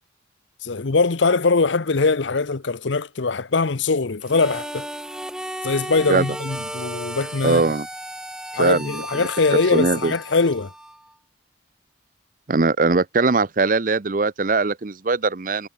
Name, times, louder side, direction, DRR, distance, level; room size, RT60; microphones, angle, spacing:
voice 1, 0.6-4.9 5.6-7.7 8.5-10.7, left 4 dB, 75° left, 0.8 m, -22 dB
Harmonica, 4.2-11.1, right 1 dB, 5° right, 0.7 m, -34 dB
voice 2, 7.4-7.9 8.6-9.0 9.7-10.1 12.5-15.7, right 3 dB, 45° right, 0.7 m, -20 dB
head